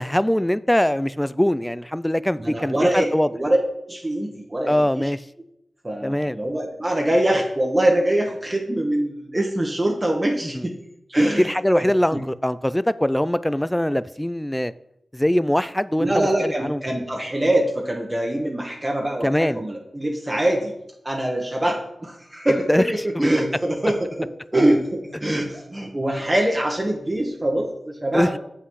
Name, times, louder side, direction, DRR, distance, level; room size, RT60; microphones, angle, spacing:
voice 1, 0.0-3.3 4.7-5.2 6.0-6.4 10.5-10.7 11.2-14.7 15.1-16.8 19.2-19.6 22.5-22.8 23.2-23.3 28.1-28.3, left 1 dB, 10° left, 0.3 m, -22 dB
voice 2, 2.4-3.6 3.9-5.1 5.8-10.7 11.1-11.8 12.1-12.2 16.0-20.7 21.0-28.4, right 1 dB, 25° right, 1.3 m, -23 dB
7.6 x 5.8 x 4.8 m
wide cardioid pair, 65°, 0 cm